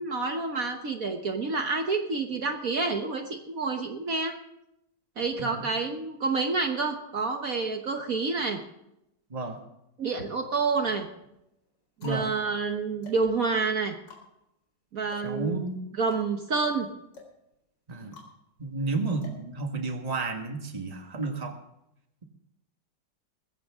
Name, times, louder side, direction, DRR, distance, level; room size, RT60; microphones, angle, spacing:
voice 1, 0.0-4.3 5.2-8.6 10.0-11.1 12.0-13.9 14.9-15.6 15.9-16.9, right 4 dB, 55° right, 4 dB, 1.5 m, -28 dB
sound 1, 10.4-10.8 11.5-20.2, left 3 dB, 80° left, 4.8 m, -52 dB
voice 2, 15.2-15.8 17.9-18.2 18.6-21.6, right 3 dB, 20° right, 4 dB, 1.6 m, -31 dB
20.5 x 15.5 x 3.7 m, 0.84 s
omnidirectional pair, 1.9 m